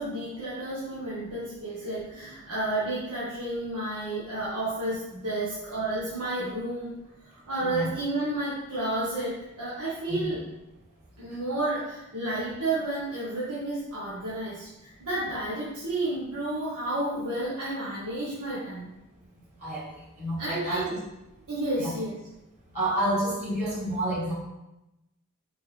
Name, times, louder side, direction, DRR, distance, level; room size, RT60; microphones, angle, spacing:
voice 1, 0.0-7.0 7.2-10.4 11.2-18.9 20.4-21.0 21.5-22.1, right 2 dB, 80° right, -9 dB, 1.7 m, -31 dB
voice 2, 20.2-20.8 21.8-21.9 22.7-24.3, right 1 dB, 30° right, -6 dB, 2.4 m, -29 dB
6.8 x 4.6 x 3.6 m, 0.92 s
head